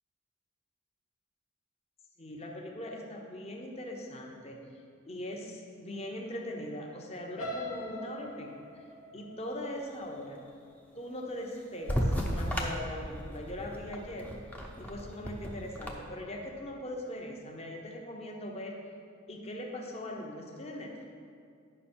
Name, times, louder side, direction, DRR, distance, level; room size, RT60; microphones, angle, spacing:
voice 1, 2.2-4.6 5.1-8.5 9.1-10.4 11.0-14.3 14.8-18.8 19.3-21.0, left 1 dB, 30° left, 0 dB, 0.9 m, -40 dB
sound 1, 7.4-11.3 11.8-12.1 12.5-12.6, left 1 dB, 90° left, 1.1 m, -43 dB
sound 2, 11.9-15.9, equal, 5° left, 0.6 m, -34 dB
9.9 x 5.7 x 4.4 m, 2.3 s
head